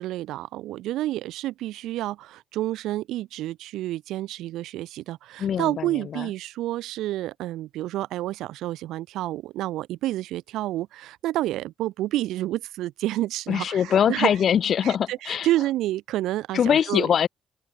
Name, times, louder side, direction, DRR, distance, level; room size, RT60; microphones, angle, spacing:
voice 1, 0.0-2.1 2.6-5.2 5.6-8.3 8.6-10.9 11.2-13.6 14.1-14.3 14.8-17.1, right 15 dB, 90° right, 3.8 m, -29 dB
voice 2, 5.4-6.3 13.5-15.5 16.5-17.3, left 8 dB, 60° left, 2.1 m, -23 dB
open air
cardioid pair, 90°, 0 cm